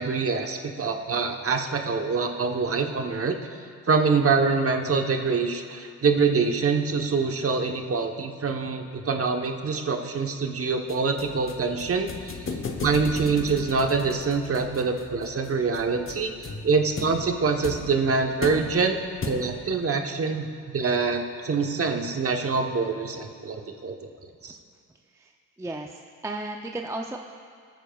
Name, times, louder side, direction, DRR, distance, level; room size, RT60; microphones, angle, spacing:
voice 1, 0.0-3.4 3.9-12.5 12.8-19.0 19.3-24.0 24.4-24.6, right 4 dB, 35° right, 4 dB, 1.1 m, -25 dB
sound 1, 10.9-19.8, left 4 dB, 30° left, 1.0 m, -37 dB
voice 2, 25.1-27.2, right 2 dB, 10° right, 2 dB, 0.5 m, -35 dB
18.0 x 9.3 x 2.4 m, 2.2 s
cardioid pair, 85°, 39 cm